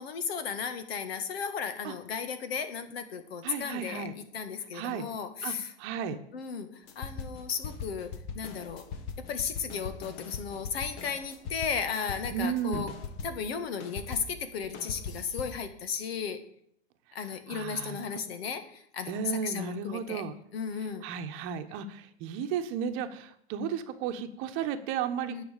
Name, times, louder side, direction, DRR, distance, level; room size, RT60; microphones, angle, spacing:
voice 1, 0.0-5.7 6.3-8.8 9.3-12.9 13.2-16.4 17.1-20.2 20.5-21.0 25.3-25.4, left 6 dB, 60° left, 9 dB, 1.7 m, -35 dB
voice 2, 3.4-4.1 4.7-5.1 5.4-6.2 12.3-12.8 17.5-18.0 19.1-20.3 21.0-25.4, right 7 dB, 35° right, 7 dB, 1.2 m, -34 dB
sound 1, 6.9-13.5 13.8-15.6, left 5 dB, 40° left, 1.5 m, -41 dB
10.0 x 5.7 x 8.3 m, 0.68 s
hypercardioid pair, 115°, 34 cm